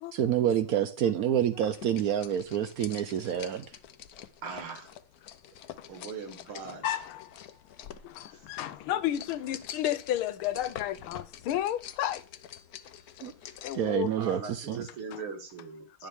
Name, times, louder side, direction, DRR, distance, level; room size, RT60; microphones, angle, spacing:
voice 1, 0.1-3.7 13.2-13.3 13.7-14.9, right 10 dB, 75° right, 0.8 m, -28 dB
sound 1, 1.6-13.9, left 10 dB, 60° left, 1.0 m, -47 dB
voice 2, 4.4-4.9 5.9-6.8 14.2-16.1, right 5 dB, 90° right, 2.7 m, -40 dB
voice 3, 6.8-7.4 7.8-12.2 13.6-14.1 15.1-15.2 16.0-16.1, left 12 dB, 90° left, 1.6 m, -32 dB
11.0 x 7.3 x 3.5 m
omnidirectional pair, 2.3 m